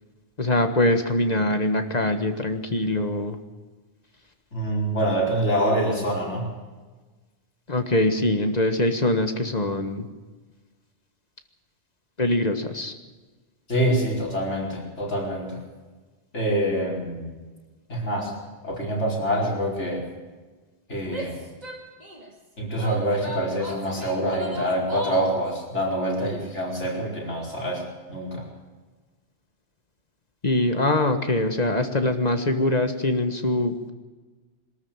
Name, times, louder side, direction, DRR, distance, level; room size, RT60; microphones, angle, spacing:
voice 1, 0.4-3.4 7.7-10.1 12.2-12.9 30.4-33.9, left 1 dB, 35° left, 7 dB, 1.7 m, -23 dB
voice 2, 4.5-6.4 13.7-15.6 16.3-17.3 17.9-18.3 18.6-20.0 20.9-21.4 22.6-27.8 28.1-28.4, right 1 dB, 85° left, -2 dB, 5.2 m, -25 dB
Female speech woman speaking / Yell, 21.0-22.3 22.8-25.4, right 1 dB, 35° right, 2.9 m, -36 dB
22.5 x 13.5 x 8.9 m, 1.3 s
omnidirectional pair, 1.2 m